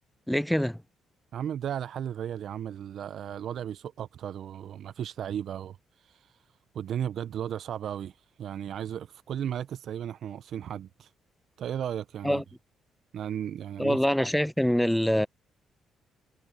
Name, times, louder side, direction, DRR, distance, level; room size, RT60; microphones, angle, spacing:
voice 1, 0.3-0.8 12.2-12.4 13.8-15.3, equal, ahead, 0.5 m, -25 dB
voice 2, 1.3-6.4 6.7-11.1 11.6-12.4 13.1-14.0, right 9 dB, 65° right, 0.3 m, -35 dB
cardioid pair, 90°, 0 cm